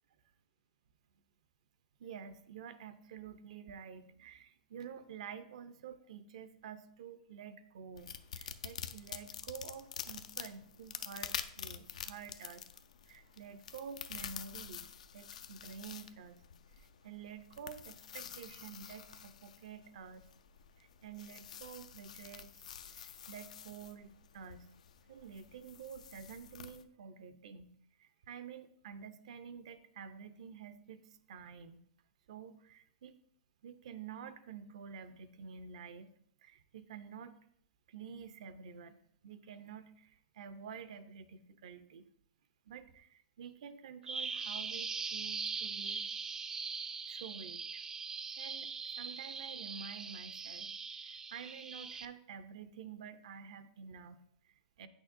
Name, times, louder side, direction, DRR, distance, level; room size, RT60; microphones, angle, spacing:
voice 1, 2.0-12.7 13.1-16.4 17.0-20.2 20.8-22.7 22.9-24.7 25.1-31.0 31.3-31.8 32.3-33.2 33.6-36.1 36.4-37.3 37.9-39.0 39.2-42.0 42.7-46.0 47.1-47.8 48.4-48.7 49.0-50.7 51.0-54.9, right 7 dB, 75° right, 12 dB, 0.5 m, -49 dB
sound 1, 8.0-26.8, left 8 dB, 85° left, 0.4 m, -48 dB
Bird vocalization bird call bird song, 44.1-52.1, right 5 dB, 15° right, 0.3 m, -41 dB
8.6 x 6.2 x 2.5 m, 0.69 s
hypercardioid pair, 135°, 4 cm